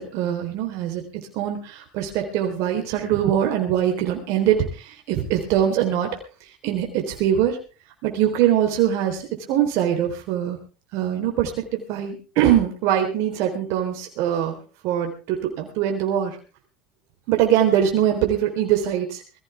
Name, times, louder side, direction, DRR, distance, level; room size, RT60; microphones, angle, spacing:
voice 1, 0.0-6.1 6.6-7.6 8.0-9.2 9.5-10.6 10.9-14.6 14.8-16.4 17.3-19.2, right 10 dB, 65° right, 2 dB, 3.8 m, -22 dB
20.5 x 15.0 x 3.5 m, 0.35 s
supercardioid pair, 100°, 6 cm